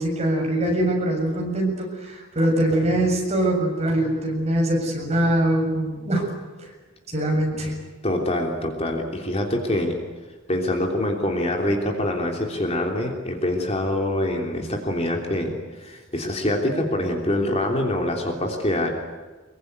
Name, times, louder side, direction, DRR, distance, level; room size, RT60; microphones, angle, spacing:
voice 1, 0.0-6.2 7.1-7.7, right 1 dB, 30° right, 0 dB, 7.3 m, -23 dB
voice 2, 8.0-10.0 10.5-18.9, left 1 dB, 30° left, 2 dB, 3.2 m, -25 dB
25.0 x 23.0 x 9.5 m, 1.3 s
head